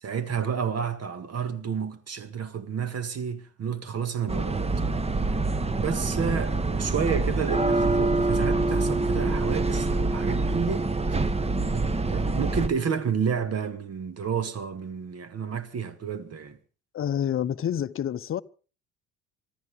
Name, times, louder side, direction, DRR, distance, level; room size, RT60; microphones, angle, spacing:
voice 1, 0.0-4.7 5.8-11.3 11.7-16.6, right 7 dB, 40° right, 1.7 m, -31 dB
sound 1, 4.3-12.7, right 3 dB, 15° right, 1.1 m, -25 dB
voice 2, 16.9-18.4, left 9 dB, 35° left, 0.8 m, -28 dB
25.5 x 14.0 x 3.6 m
hypercardioid pair, 60°, 37 cm